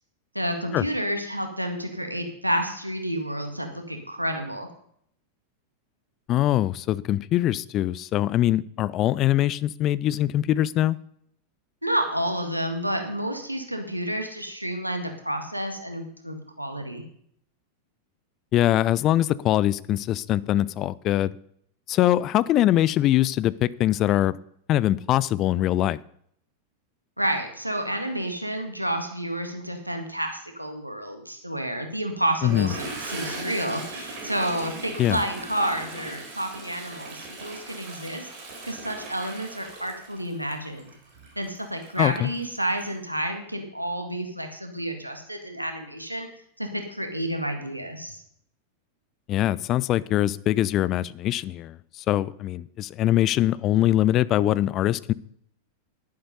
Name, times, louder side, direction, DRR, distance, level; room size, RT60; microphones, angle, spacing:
voice 1, 0.3-4.7 11.8-17.0 27.2-38.3 38.6-40.9 41.4-46.3 46.6-48.2, right 1 dB, 90° right, 5 dB, 1.9 m, -30 dB
voice 2, 6.3-11.0 18.5-21.3 21.9-24.3 24.7-26.0 32.4-32.7 35.0-35.2 42.0-42.3 49.3-55.1, left 13 dB, 35° left, 19 dB, 0.5 m, -23 dB
Toilet flush, 32.3-42.9, right 2 dB, 45° right, 4.2 m, -39 dB
11.5 x 10.5 x 5.4 m, 0.67 s
figure-of-eight pair, 90°, 0 cm